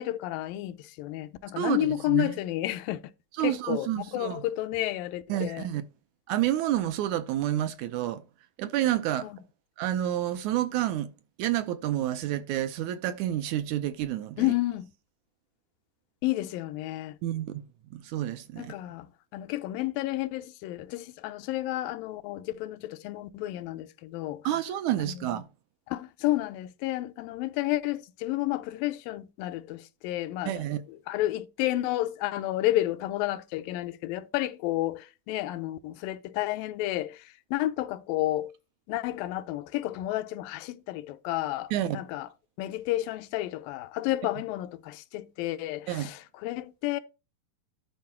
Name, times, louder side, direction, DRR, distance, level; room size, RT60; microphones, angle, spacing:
voice 1, 0.0-3.0 3.4-5.7 9.2-9.4 14.4-14.9 16.2-17.2 18.6-19.1 19.3-24.4 25.0-25.2 25.9-30.5 31.1-38.5 38.9-42.3 42.6-47.0, left 15 dB, 85° left, 2.3 m, -31 dB
voice 2, 1.6-2.4 3.3-4.4 5.3-5.8 6.3-8.2 8.6-9.3 9.8-11.1 11.4-14.5 17.2-17.6 17.9-18.7 24.4-25.5 30.5-30.8 41.7-42.0 45.9-46.1, right 12 dB, 80° right, 1.8 m, -29 dB
11.5 x 4.7 x 4.4 m
omnidirectional pair, 4.0 m